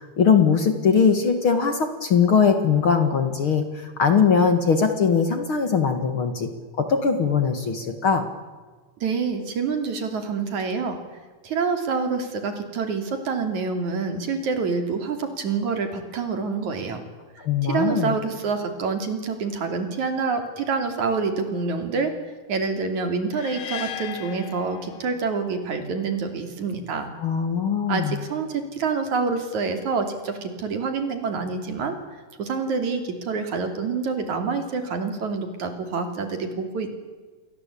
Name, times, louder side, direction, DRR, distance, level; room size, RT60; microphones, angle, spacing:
voice 1, 0.0-3.7 4.0-6.5 6.8-8.3 17.4-18.2 27.2-28.2, left 6 dB, 45° left, 8 dB, 2.4 m, -20 dB
voice 2, 9.0-11.0 11.4-17.0 17.6-22.1 22.5-27.1 27.9-32.0 32.4-36.9, right 4 dB, 60° right, 7 dB, 4.3 m, -27 dB
sound 1, 23.3-25.5, left 10 dB, 70° left, 2.7 m, -36 dB
29.0 x 22.5 x 8.6 m, 1.4 s
omnidirectional pair, 3.7 m